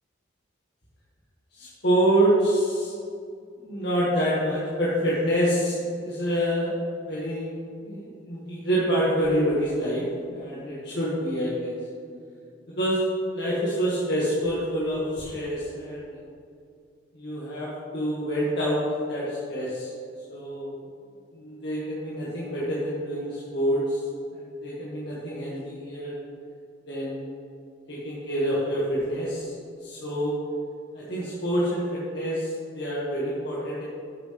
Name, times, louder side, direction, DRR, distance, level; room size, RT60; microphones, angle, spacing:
voice 1, 1.5-2.9 3.6-6.7 7.0-7.6 7.8-11.7 12.8-13.0 13.3-16.2 17.1-18.8 19.1-19.9 20.3-20.8 21.3-24.0 24.3-26.2 26.9-27.2 27.9-29.5 29.8-30.3 30.9-33.8, equal, 60° left, -8 dB, 1.9 m, -27 dB
11.5 x 7.8 x 3.4 m, 2.3 s
head